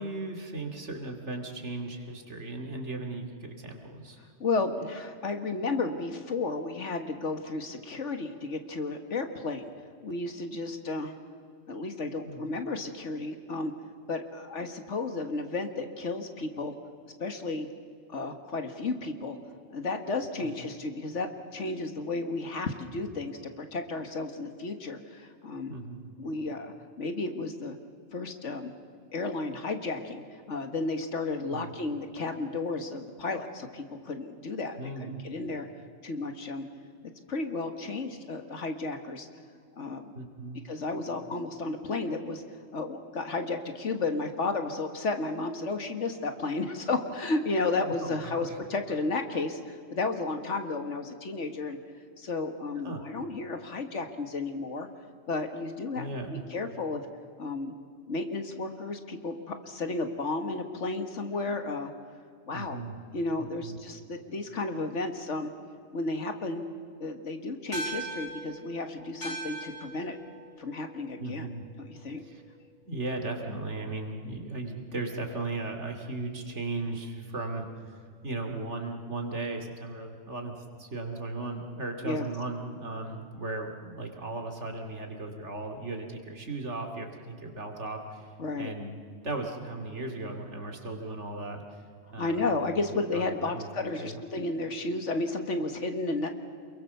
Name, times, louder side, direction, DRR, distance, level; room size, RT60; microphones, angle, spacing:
voice 1, 0.0-4.2 12.2-12.5 20.4-20.5 25.7-26.1 31.5-31.7 34.8-35.2 40.1-40.7 47.8-48.6 52.8-53.0 56.0-56.4 62.5-63.0 63.4-63.8 71.2-71.6 72.2-72.4 72.8-77.7 78.2-88.3 88.6-91.8 92.1-92.5 92.9-93.7 94.0-94.2, right 2 dB, 70° right, 3 dB, 2.8 m, -37 dB
voice 2, 4.4-9.7 10.0-11.1 11.7-13.7 14.1-16.8 17.2-17.7 18.1-19.4 19.7-25.7 26.2-27.8 28.1-28.7 29.1-34.8 35.1-35.7 36.0-36.7 37.3-39.3 39.8-40.1 40.6-42.4 42.7-51.8 52.2-54.9 55.3-56.0 56.3-57.0 57.4-57.7 58.1-61.9 62.5-62.8 63.1-65.5 65.9-66.6 67.0-70.2 70.6-71.5 71.8-72.2 82.0-82.3 88.4-88.7 92.2-96.3, left 3 dB, 75° left, 7 dB, 2.0 m, -33 dB
sound 1, 67.7-72.4, right 2 dB, 40° left, 3.3 m, -41 dB
28.5 x 22.0 x 6.9 m, 2.3 s
omnidirectional pair, 1.2 m